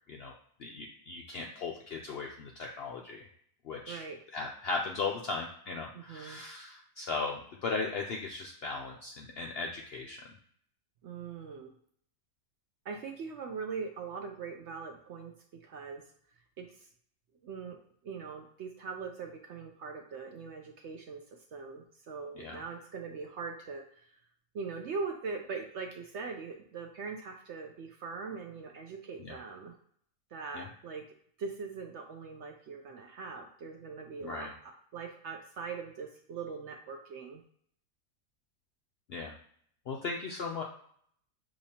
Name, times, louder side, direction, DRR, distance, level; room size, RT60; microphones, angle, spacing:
voice 1, 0.6-3.3 3.6-4.0 4.3-10.2 22.4-22.6 29.2-29.4 30.5-30.7 34.2-34.5 39.1-39.4 39.9-40.6, left 4 dB, 70° left, 1 dB, 0.6 m, -37 dB
voice 2, 3.9-4.2 5.9-6.4 11.0-11.7 12.8-16.0 16.6-16.9 17.4-17.8 18.0-24.2 24.5-29.7 30.3-31.0 31.4-37.4, right 5 dB, 65° right, 4 dB, 0.7 m, -41 dB
6.5 x 2.9 x 2.8 m, 0.63 s
omnidirectional pair, 1.5 m